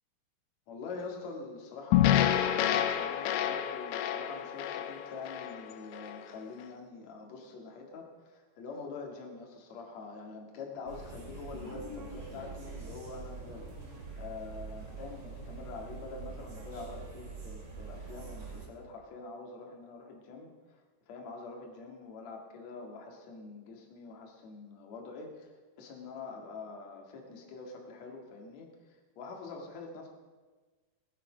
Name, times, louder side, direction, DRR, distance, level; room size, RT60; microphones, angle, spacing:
voice 1, 0.7-20.8 21.1-25.5 25.8-30.1, left 4 dB, 50° left, 0 dB, 2.6 m, -45 dB
sound 1, 1.9-6.2, left 11 dB, 90° left, 3.0 m, -28 dB
sound 2, 10.9-18.7, right 3 dB, 35° right, 3.4 m, -44 dB
20.0 x 9.7 x 5.0 m, 1.3 s
omnidirectional pair, 5.2 m